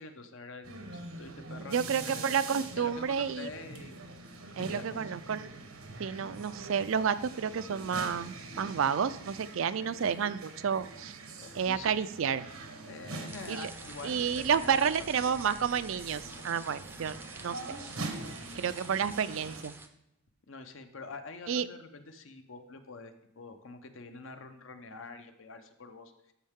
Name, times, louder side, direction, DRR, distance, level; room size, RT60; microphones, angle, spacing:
voice 1, 0.0-2.4 2.8-4.0 4.6-5.1 11.4-11.9 12.8-15.3 20.5-26.1, left 3 dB, 70° left, 7 dB, 0.9 m, -46 dB
sound 1, 0.6-19.6, right 3 dB, 90° right, 1.2 m, -44 dB
voice 2, 1.7-3.5 4.6-5.5 6.0-11.2 11.6-12.4 13.5-13.7 14.0-17.2 17.4-17.8 18.6-19.7 21.5-21.7, right 7 dB, 75° right, 14 dB, 0.4 m, -30 dB
sound 2, 13.3-19.9, right 2 dB, 10° right, 0.5 m, -48 dB
13.0 x 5.5 x 3.6 m, 0.90 s
head